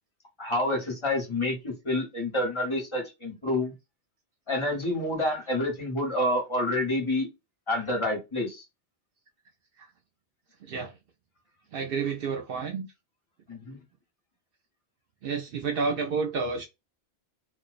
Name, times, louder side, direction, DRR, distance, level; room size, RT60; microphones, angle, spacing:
voice 1, 0.4-3.7 4.5-7.3 7.7-8.6 13.5-13.8, left 1 dB, 30° left, 1.0 m, -28 dB
voice 2, 10.6-10.9 11.7-12.9 15.2-16.7, right 5 dB, 65° right, 0.7 m, -30 dB
2.5 x 2.1 x 2.3 m
omnidirectional pair, 1.1 m